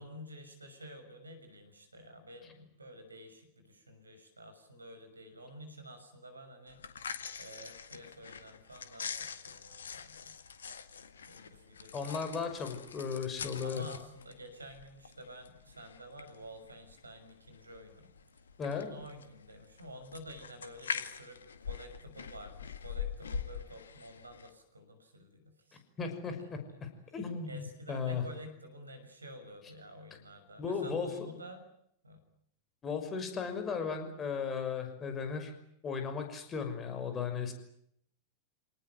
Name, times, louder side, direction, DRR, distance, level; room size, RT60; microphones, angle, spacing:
voice 1, 0.0-6.8 7.4-10.3 11.3-12.2 13.6-18.1 18.7-25.8 27.5-31.7 32.0-32.2, equal, 80° right, 8 dB, 6.2 m, -50 dB
sound 1, 6.7-24.5, left 6 dB, 70° left, 1.9 m, -44 dB
voice 2, 11.9-13.8 18.6-18.9 26.0-28.2 30.6-31.1 32.8-35.5 35.8-37.5, left 6 dB, 25° left, 6 dB, 5.9 m, -36 dB
28.0 x 19.0 x 9.4 m, 0.72 s
figure-of-eight pair, 90°, 0 cm